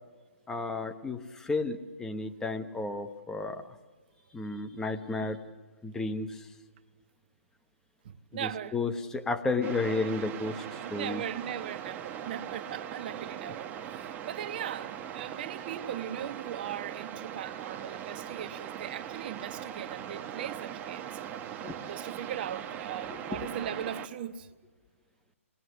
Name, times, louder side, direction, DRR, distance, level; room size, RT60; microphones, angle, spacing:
voice 1, 0.5-3.8 4.3-5.4 5.8-6.5 8.3-11.2 21.6-21.8 23.3-23.4, left 3 dB, 5° left, 1.0 m, -32 dB
voice 2, 8.0-8.8 10.8-21.2 21.9-24.5, right 10 dB, 40° right, 1.1 m, -39 dB
sound 1, 9.6-24.1, right 9 dB, 20° right, 1.1 m, -40 dB
27.0 x 20.5 x 8.0 m
figure-of-eight pair, 135°, 8 cm